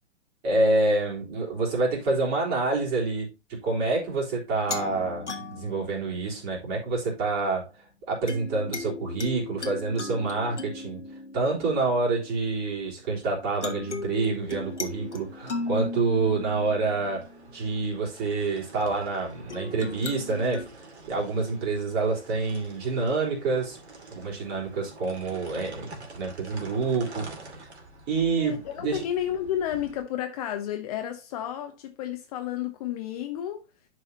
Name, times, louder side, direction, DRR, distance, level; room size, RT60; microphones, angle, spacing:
voice 1, 0.4-7.7 8.1-11.0 11.3-23.8 24.1-27.3 28.1-29.0, right 3 dB, 30° right, 3.7 m, -27 dB
sound 1, 4.7-6.9 8.3-13.1 13.6-17.8 19.5-20.7, left 3 dB, 85° left, 1.3 m, -37 dB
sound 2, 14.3-30.0, right 3 dB, 70° right, 2.5 m, -48 dB
voice 2, 28.4-33.6, left 11 dB, 35° left, 0.8 m, -31 dB
11.0 x 4.9 x 2.7 m
figure-of-eight pair, 120°, 34 cm